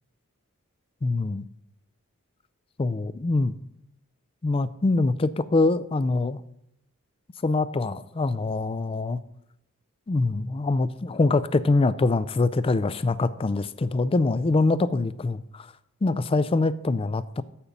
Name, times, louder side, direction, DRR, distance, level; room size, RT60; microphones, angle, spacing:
voice 1, 1.0-1.4 2.8-3.5 4.4-6.4 7.4-9.2 10.1-15.7 16.0-17.4, left 3 dB, 25° left, 16 dB, 0.3 m, -24 dB
8.7 x 5.2 x 7.1 m, 0.79 s
head